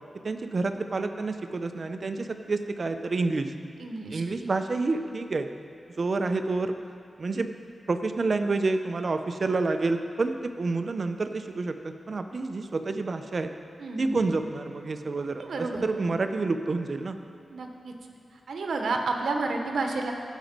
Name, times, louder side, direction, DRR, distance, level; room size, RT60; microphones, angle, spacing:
voice 1, 0.2-3.5 4.1-5.5 6.0-6.8 7.2-7.5 7.9-13.5 14.0-17.2, right 3 dB, 50° right, 8 dB, 0.6 m, -28 dB
voice 2, 3.8-4.2 13.8-14.2 15.4-15.8 17.5-17.9 18.5-20.1, right 3 dB, 85° right, 3 dB, 1.0 m, -30 dB
15.0 x 5.3 x 5.2 m, 2.3 s
wide cardioid pair, 90°, 0 cm